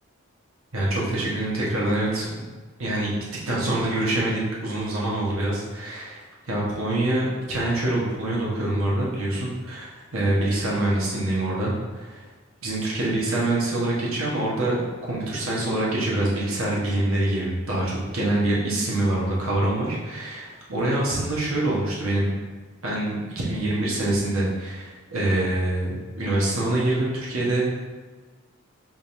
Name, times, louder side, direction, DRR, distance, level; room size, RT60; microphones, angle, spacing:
voice 1, 0.7-2.5 2.8-3.1 3.5-12.2 12.6-22.3 22.8-27.7, right 1 dB, 70° right, -5 dB, 1.3 m, -25 dB
5.2 x 3.5 x 2.7 m, 1.4 s
head